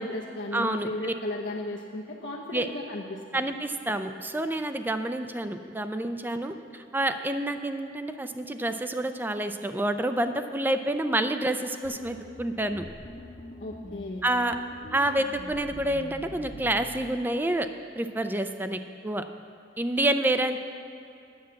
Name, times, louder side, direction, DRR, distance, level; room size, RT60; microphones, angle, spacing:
voice 1, 0.0-3.4 13.6-14.2, left 1 dB, 75° left, -4 dB, 0.9 m, -35 dB
voice 2, 0.5-1.1 2.5-2.7 3.3-12.8 14.2-14.6 14.9-17.7 18.0-19.2 19.8-20.6, right 1 dB, 10° right, 8 dB, 0.4 m, -28 dB
sound 1, 11.8-17.2, left 1 dB, 45° left, 0.9 m, -44 dB
9.6 x 7.1 x 7.5 m, 2.5 s
head